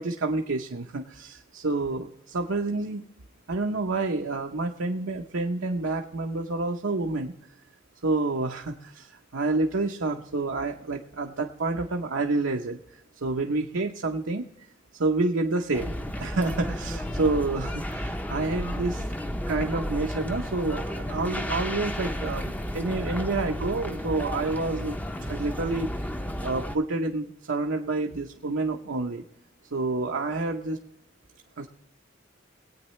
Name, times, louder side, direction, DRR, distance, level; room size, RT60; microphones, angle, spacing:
voice 1, 0.0-3.0 3.5-7.3 8.0-12.8 13.2-14.4 15.0-19.1 19.5-22.5 22.7-25.0 25.3-26.1 26.4-29.2 29.7-30.8 31.6-31.7, right 3 dB, 80° right, 2 dB, 0.9 m, -28 dB
sound 1, 15.7-26.8, equal, 10° left, 0.6 m, -32 dB
21.5 x 8.8 x 3.2 m, 0.80 s
head